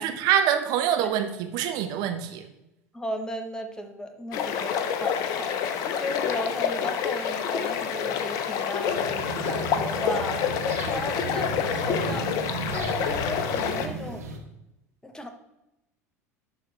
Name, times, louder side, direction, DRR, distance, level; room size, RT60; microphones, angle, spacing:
voice 1, 0.0-2.5, right 9 dB, 55° right, 7 dB, 0.9 m, -25 dB
voice 2, 2.9-14.3 15.0-15.3, equal, 10° left, 6 dB, 1.0 m, -36 dB
sound 1, 4.3-13.9, left 7 dB, 50° left, 0.7 m, -28 dB
sound 2, 8.9-14.4, right 3 dB, 80° right, 1.0 m, -35 dB
11.5 x 3.9 x 3.3 m, 0.89 s
figure-of-eight pair, 75°, 8 cm